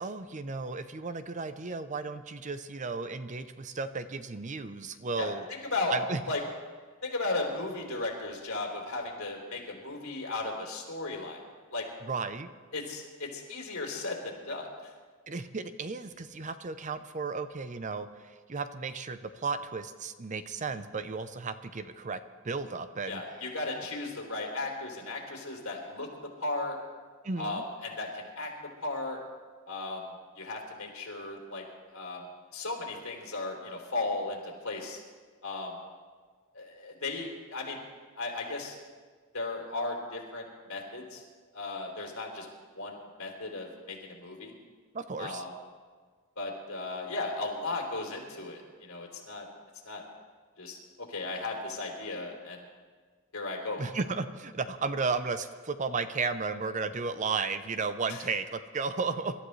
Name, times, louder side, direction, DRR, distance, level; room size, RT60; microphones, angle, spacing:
voice 1, 0.0-5.5 5.9-6.2 12.0-12.5 15.3-22.2 22.4-23.2 27.2-27.6 44.9-45.4 53.8-59.3, right 4 dB, 35° right, 11 dB, 0.6 m, -34 dB
voice 2, 5.2-6.0 6.3-6.4 7.0-11.4 11.7-11.8 12.7-14.9 23.1-26.1 26.4-26.8 27.4-28.5 28.8-29.2 29.7-30.1 30.3-31.6 31.9-32.2 32.5-35.0 35.4-35.8 36.5-37.8 38.2-38.8 39.3-41.2 41.5-42.5 42.8-44.5 45.2-45.5 46.4-49.5 49.8-50.0 50.6-50.8 51.1-52.6 53.3-53.9 58.1-58.2, left 2 dB, 80° left, 0 dB, 3.1 m, -36 dB
25.5 x 13.0 x 3.2 m, 1.5 s
head